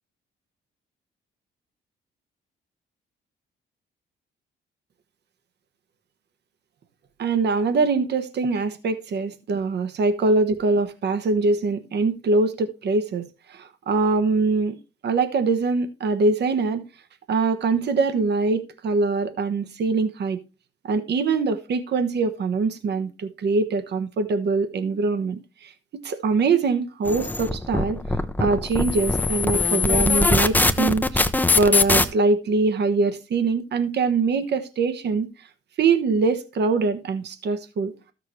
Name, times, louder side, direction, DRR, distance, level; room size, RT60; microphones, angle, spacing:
voice 1, 7.2-14.8 15.0-16.8 17.3-20.4 20.8-25.7 26.0-28.0 28.4-35.3 35.8-37.9, right 4 dB, 60° right, 1.2 m, -23 dB
sound 1, 27.1-32.0, left 3 dB, 10° left, 0.7 m, -21 dB
13.0 x 6.7 x 3.1 m
cardioid pair, 90°, 20 cm